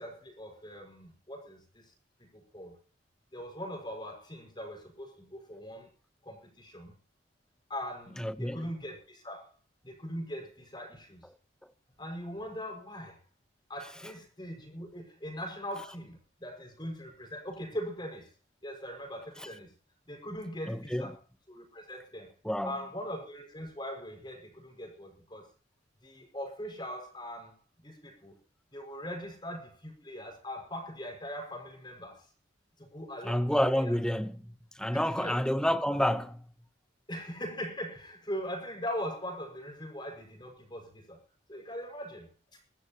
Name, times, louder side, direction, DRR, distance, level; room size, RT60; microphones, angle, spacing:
voice 1, 0.0-1.9 2.2-2.7 3.3-5.9 6.2-6.9 7.7-9.5 9.8-11.3 12.0-13.2 13.7-18.3 18.6-19.7 20.1-21.1 21.5-22.3 22.6-25.5 26.0-28.3 28.7-32.3 32.8-33.9 34.9-35.4 37.1-41.2 41.5-42.6, equal, 25° left, 5.7 m, -41 dB
voice 2, 8.2-8.6 19.4-19.5 20.7-21.1 22.4-22.8 33.2-36.4, equal, 5° left, 0.9 m, -29 dB
25.5 x 13.5 x 3.0 m
head